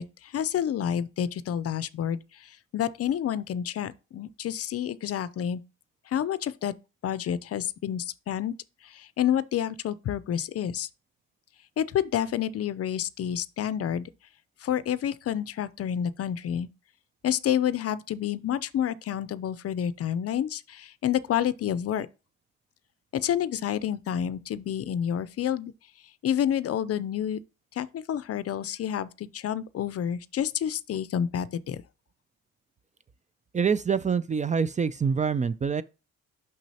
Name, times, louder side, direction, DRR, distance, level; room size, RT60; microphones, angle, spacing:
voice 1, 0.0-5.6 6.1-6.8 7.0-8.5 8.8-10.9 11.8-14.1 14.6-16.7 17.2-22.1 23.1-25.7 26.2-27.4 27.7-31.8, left 10 dB, 50° left, 0.5 m, -29 dB
voice 2, 33.5-35.8, right 6 dB, 25° right, 0.4 m, -25 dB
6.1 x 6.0 x 2.8 m
cardioid pair, 90°, 30 cm